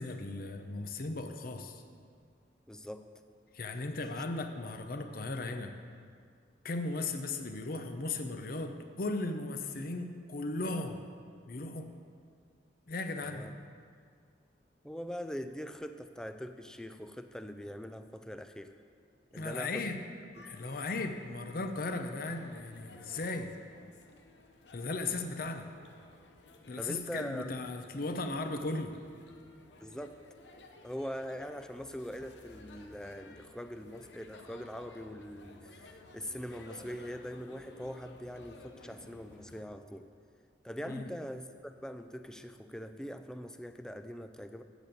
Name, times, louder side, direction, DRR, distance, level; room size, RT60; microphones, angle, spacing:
voice 1, 0.0-1.8 3.5-5.7 6.6-11.0 11.5-11.9 12.9-13.5 19.3-20.0 20.4-23.5 24.7-25.7 26.7-28.9 40.9-41.1, left 2 dB, 55° left, 7 dB, 0.7 m, -36 dB
voice 2, 2.7-3.1 13.2-13.5 14.8-18.8 19.3-20.0 20.4-20.5 26.8-27.5 29.8-30.2 30.8-40.1 40.6-44.6, equal, 5° left, 9 dB, 0.4 m, -42 dB
sound 1, 20.3-39.6, left 2 dB, 90° left, 0.8 m, -55 dB
8.1 x 6.8 x 7.8 m, 2.2 s
head